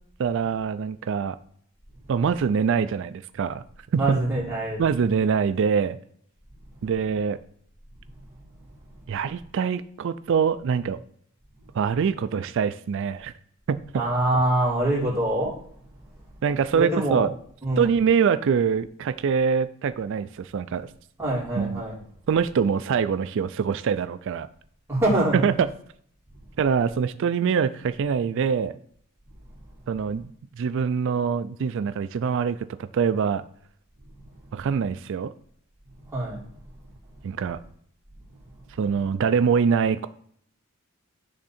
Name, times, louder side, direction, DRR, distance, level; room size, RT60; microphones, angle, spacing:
voice 1, 0.2-1.4 2.1-3.6 3.9-4.2 4.8-6.0 6.8-7.4 9.1-11.0 11.7-13.3 13.7-14.0 16.4-17.3 17.8-20.9 21.6-21.8 22.3-24.5 25.3-25.7 26.6-28.8 29.9-32.6 32.9-33.4 34.5-35.3 37.2-37.6 38.8-40.1, right 6 dB, 60° right, 13 dB, 0.3 m, -24 dB
voice 2, 4.0-4.8 13.9-15.5 16.7-17.3 17.6-17.9 21.2-21.9 24.9-25.4 36.1-36.4, right 1 dB, 10° right, -6 dB, 2.8 m, -24 dB
10.5 x 3.6 x 4.2 m, 0.63 s
head